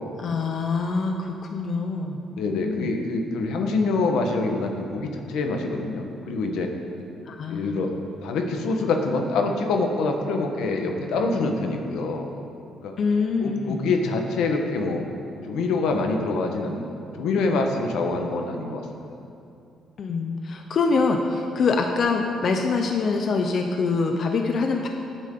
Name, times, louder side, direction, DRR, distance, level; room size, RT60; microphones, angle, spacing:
voice 1, 0.2-2.9 7.3-7.6 13.0-13.8 20.0-24.9, left 4 dB, 55° left, 3 dB, 0.8 m, -25 dB
voice 2, 2.3-6.7 7.5-7.9 8.2-12.3 12.8-12.9 13.4-15.0 15.4-16.9 17.2-18.8, left 3 dB, 85° left, 3 dB, 1.3 m, -25 dB
16.5 x 9.0 x 3.8 m, 2.6 s
cardioid pair, 90°, 0 cm